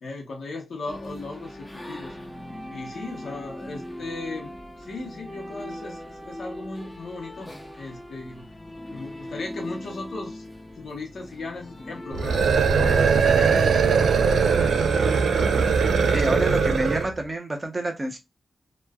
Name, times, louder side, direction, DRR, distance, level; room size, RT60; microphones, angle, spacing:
voice 1, 0.0-2.2 2.7-4.5 4.9-7.5 7.8-8.5 8.9-10.5 10.8-12.4 12.7-14.5 14.7-15.1, left 3 dB, 75° left, 0.8 m, -37 dB
sound 1, 0.9-16.0, left 1 dB, 15° left, 0.6 m, -40 dB
sound 2, 12.1-17.1, right 5 dB, 90° right, 0.4 m, -20 dB
voice 2, 16.1-18.2, right 1 dB, 25° right, 0.7 m, -28 dB
3.0 x 2.2 x 2.3 m
wide cardioid pair, 85°, 0 cm